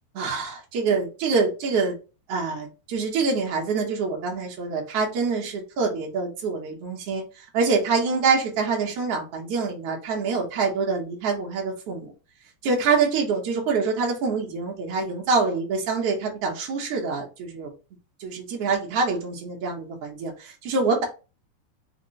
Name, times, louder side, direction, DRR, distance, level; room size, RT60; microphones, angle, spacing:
voice 1, 0.1-2.0 2.3-12.1 12.6-17.7 18.2-21.0, right 4 dB, 70° right, -1 dB, 1.4 m, -25 dB
5.8 x 2.2 x 3.9 m, 0.31 s
omnidirectional pair, 4.5 m